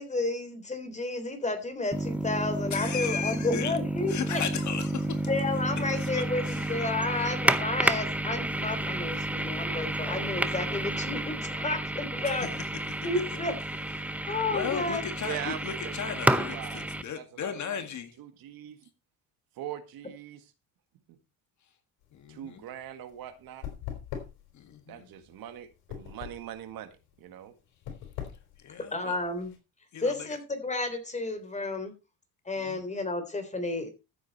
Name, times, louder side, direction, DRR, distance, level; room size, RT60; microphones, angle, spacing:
voice 1, 0.0-4.4 5.3-12.5 13.0-13.5 14.3-15.0 28.9-29.5 30.0-31.9 32.5-33.9, left 2 dB, 20° left, 3.6 m, -31 dB
sound 1, 1.9-17.0, right 1 dB, 5° right, 0.7 m, -31 dB
voice 2, 2.7-3.8 4.1-5.3 6.0-6.8 7.2-7.3 12.9-13.1 14.0-18.2 22.1-22.6 24.5-25.1 28.6-29.2 29.9-30.4 32.6-32.8, left 7 dB, 50° left, 1.9 m, -36 dB
voice 3, 15.2-16.1 16.4-16.9 17.1-17.9 18.2-18.8 19.6-20.4 22.3-23.6 24.9-27.5, right 11 dB, 65° right, 1.9 m, -41 dB
sound 2, 22.0-29.6, left 9 dB, 80° left, 4.4 m, -42 dB
14.0 x 8.1 x 4.2 m
cardioid pair, 125°, 38 cm